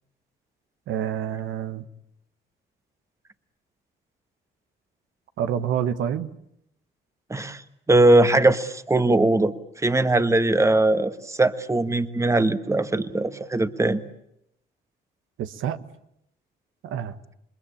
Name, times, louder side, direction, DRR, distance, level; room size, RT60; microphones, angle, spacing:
voice 1, 0.9-1.8 5.4-6.3 15.4-15.8 16.8-17.1, right 9 dB, 80° right, 10 dB, 1.3 m, -27 dB
voice 2, 7.3-7.6 7.9-9.5 9.8-14.0, right 2 dB, 15° right, 10 dB, 1.4 m, -20 dB
28.0 x 21.5 x 8.6 m, 0.79 s
cardioid pair, 90°, 20 cm